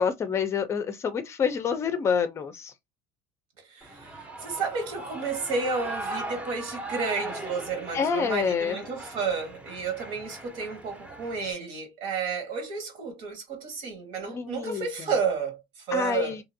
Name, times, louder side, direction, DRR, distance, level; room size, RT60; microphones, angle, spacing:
voice 1, 0.0-2.7 7.9-8.8 14.3-15.1 15.9-16.4, left 6 dB, 30° left, 0.5 m, -27 dB
voice 2, 3.7-16.4, right 5 dB, 65° right, 1.4 m, -31 dB
Shout / Cheering, 3.8-11.5, right 1 dB, 15° right, 0.8 m, -39 dB
2.8 x 2.4 x 2.7 m
cardioid pair, 140°, 10 cm